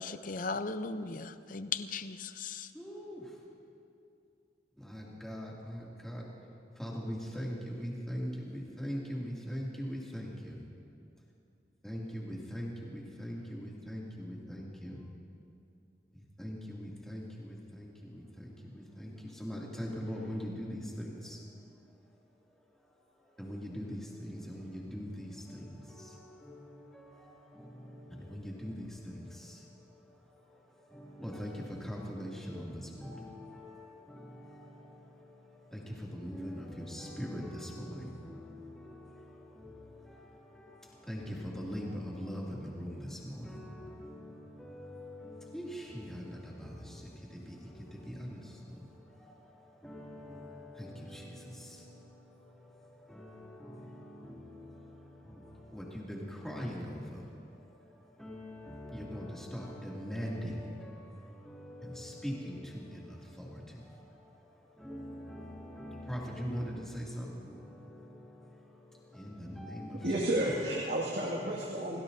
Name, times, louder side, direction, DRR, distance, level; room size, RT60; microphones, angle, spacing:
voice 1, 0.0-2.7, left 4 dB, 45° left, 11 dB, 0.6 m, -37 dB
voice 2, 2.7-3.4 4.8-6.3 6.8-10.6 11.8-15.1 16.1-21.4 21.9-22.0 22.5-70.3 71.0-71.3 71.9-72.0, equal, 5° left, -5 dB, 2.6 m, -42 dB
voice 3, 70.0-72.0, right 1 dB, 65° right, -5 dB, 2.1 m, -31 dB
28.0 x 17.5 x 2.8 m, 2.5 s
head